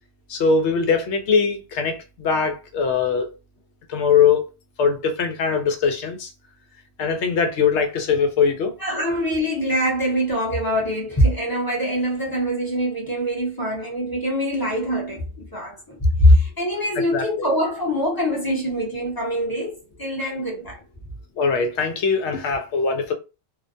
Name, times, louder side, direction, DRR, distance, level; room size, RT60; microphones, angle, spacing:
voice 1, 0.3-3.3 3.9-4.5 4.8-6.3 7.0-8.7 17.1-17.2 21.4-23.1, left 5 dB, 90° left, 0.9 m, -21 dB
voice 2, 8.8-20.8, equal, 25° left, 0.7 m, -23 dB
2.4 x 2.2 x 2.5 m
omnidirectional pair, 1.1 m